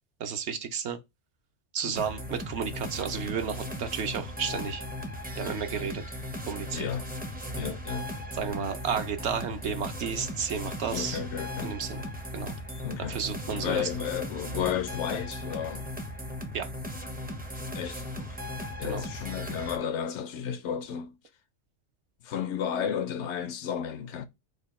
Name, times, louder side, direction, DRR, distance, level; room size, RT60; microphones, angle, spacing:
voice 1, 0.2-1.0 1.7-4.8 5.4-6.0 6.5-6.9 8.4-11.2 11.6-12.1 12.3-12.5 13.1-13.8 16.5-16.7 18.8-19.0, right 7 dB, 65° right, 0.9 m, -32 dB
sound 1, 2.0-19.8, left 1 dB, 10° right, 0.4 m, -37 dB
voice 2, 6.7-7.1 7.5-8.2 10.9-11.8 12.8-13.2 13.5-15.9 17.7-18.4 18.8-21.2 22.2-24.3, left 8 dB, 75° left, 0.9 m, -33 dB
5.0 x 2.2 x 4.1 m
omnidirectional pair, 1.3 m